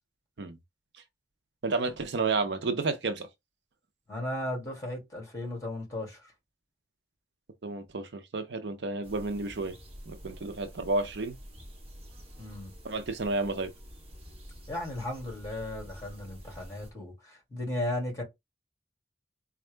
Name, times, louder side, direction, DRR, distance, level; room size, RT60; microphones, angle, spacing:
voice 1, 1.6-3.3 7.6-9.7 10.1-11.4 12.8-13.7, right 3 dB, 70° right, 0.6 m, -31 dB
voice 2, 4.1-6.3 12.4-12.7 14.7-18.2, left 1 dB, 20° left, 2.5 m, -35 dB
sound 1, 9.0-16.9, equal, 35° right, 1.1 m, -48 dB
4.3 x 2.4 x 3.2 m
head